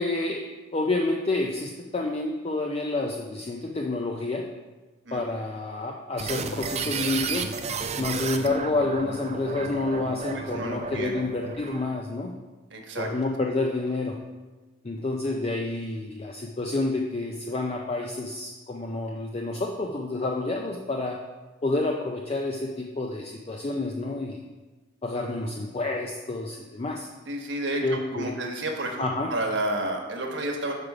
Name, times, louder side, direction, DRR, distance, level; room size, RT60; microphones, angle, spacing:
voice 1, 0.0-4.5 5.1-7.5 8.0-12.3 13.0-14.2 14.8-21.2 21.6-24.4 25.0-27.1 27.8-28.4 29.0-29.3, left 2 dB, 30° left, 1 dB, 0.4 m, -29 dB
sound 1, 6.2-12.0, right 4 dB, 35° right, 0.4 m, -33 dB
voice 2, 10.3-11.2 12.7-13.1 27.3-30.7, right 1 dB, 65° right, 1 dB, 1.2 m, -31 dB
6.7 x 4.9 x 4.8 m, 1.2 s
head